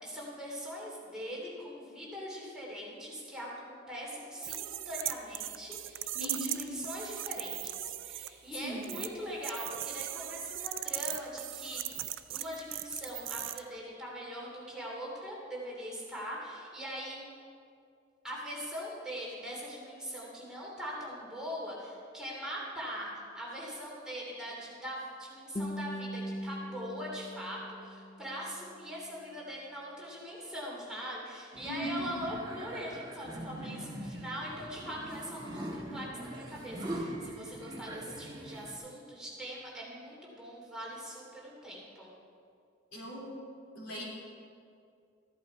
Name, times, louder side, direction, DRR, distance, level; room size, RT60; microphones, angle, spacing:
voice 1, 0.0-17.2 18.2-42.1, equal, 5° right, -5 dB, 2.9 m, -41 dB
sound 1, 4.4-8.3 8.8-9.1 9.4-13.6, right 14 dB, 70° right, 0.5 m, -38 dB
voice 2, 6.1-6.6 8.6-8.8 31.7-32.1 42.9-43.3 43.8-44.0, equal, 80° left, -3 dB, 3.6 m, -38 dB
Guitar, 25.6-28.6, equal, 30° left, 0.7 m, -40 dB
sound 2, 31.5-38.7, right 1 dB, 25° right, 1.5 m, -42 dB
15.0 x 11.0 x 4.7 m, 2.4 s
head